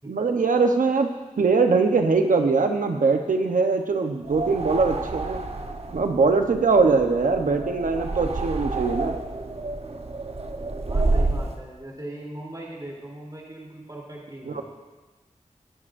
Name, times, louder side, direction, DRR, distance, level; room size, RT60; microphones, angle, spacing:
voice 1, 0.0-1.1 1.4-5.4 5.9-9.2 14.5-14.6, right 4 dB, 90° right, 5 dB, 1.0 m, -22 dB
sound 1, 4.2-11.6, right 2 dB, 50° right, 1.0 m, -29 dB
voice 2, 10.8-14.6, right 1 dB, 30° right, -3 dB, 3.3 m, -39 dB
18.5 x 11.0 x 2.6 m, 1.3 s
cardioid pair, 45°, 13 cm